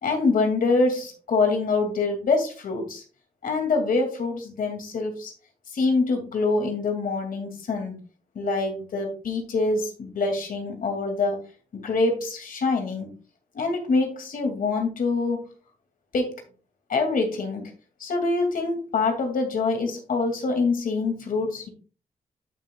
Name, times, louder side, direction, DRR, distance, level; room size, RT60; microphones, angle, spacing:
voice 1, 0.0-3.0 3.4-5.3 5.7-7.9 8.4-11.4 11.7-13.1 13.5-15.4 16.1-16.3 16.9-17.7 18.0-21.7, left 3 dB, 75° left, 4 dB, 2.3 m, -25 dB
12.5 x 6.2 x 2.3 m, 0.35 s
cardioid pair, 85°, 14 cm